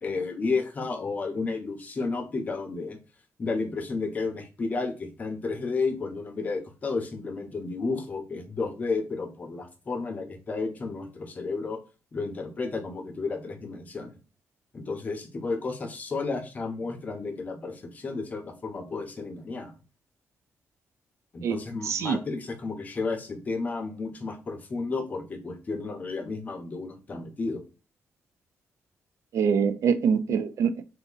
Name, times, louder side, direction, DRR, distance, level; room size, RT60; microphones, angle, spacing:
voice 1, 0.0-3.0 3.4-11.8 12.1-14.2 14.7-19.7 21.3-27.6 29.6-29.7 30.3-30.4, left 4 dB, 30° left, 0.7 m, -32 dB
voice 2, 21.8-22.2 29.3-30.8, right 7 dB, 70° right, 0.5 m, -24 dB
3.5 x 2.6 x 3.9 m
wide cardioid pair, 165°, 5 cm